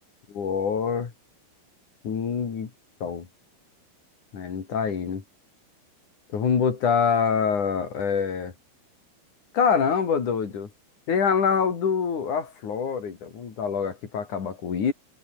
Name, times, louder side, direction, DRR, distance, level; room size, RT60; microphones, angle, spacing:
voice 1, 0.3-1.1 2.0-2.7 3.0-3.3 4.3-5.2 6.3-8.5 9.5-10.7 11.1-14.9, left 6 dB, 40° left, 4.0 m, -25 dB
omnidirectional pair, 5.9 m